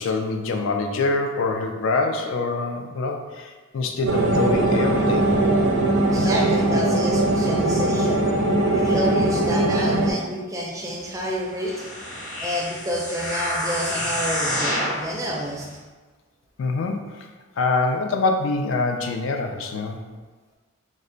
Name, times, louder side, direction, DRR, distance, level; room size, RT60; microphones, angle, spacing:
voice 1, 0.0-5.3 16.6-17.3 17.6-20.0, left 3 dB, 65° left, 4 dB, 0.3 m, -25 dB
sound 1, 4.1-10.1, right 1 dB, 75° right, 0.5 m, -20 dB
voice 2, 6.1-8.3 8.7-11.8 12.4-15.7, equal, 15° right, -2 dB, 0.4 m, -29 dB
sound 2, 11.5-15.1 15.7-15.8, equal, 15° left, 0.7 m, -28 dB
3.2 x 2.1 x 3.8 m, 1.3 s
head